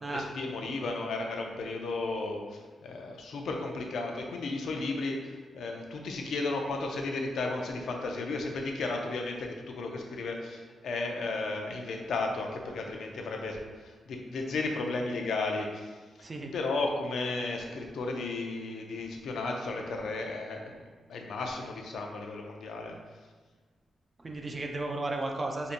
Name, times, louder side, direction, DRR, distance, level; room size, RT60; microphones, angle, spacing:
voice 1, 0.0-16.0 16.5-23.0, left 3 dB, 80° left, 2 dB, 0.5 m, -34 dB
voice 2, 24.2-25.7, right 2 dB, 30° right, 2 dB, 0.5 m, -34 dB
5.0 x 2.7 x 2.5 m, 1.4 s
cardioid pair, 110°, 0 cm